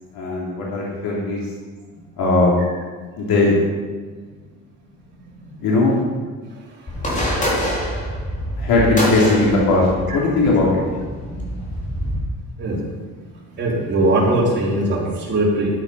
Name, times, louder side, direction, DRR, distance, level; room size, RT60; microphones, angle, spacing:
voice 1, 0.1-1.4 2.2-2.5 3.2-3.6 5.6-6.0 8.6-10.8, left 2 dB, 80° left, -5 dB, 3.1 m, -18 dB
sound 1, 6.9-12.2, equal, 20° left, 3.2 m, -26 dB
voice 2, 13.6-15.7, right 1 dB, 30° right, -5 dB, 4.1 m, -20 dB
13.0 x 9.2 x 5.6 m, 1.5 s
cardioid pair, 150°, 35 cm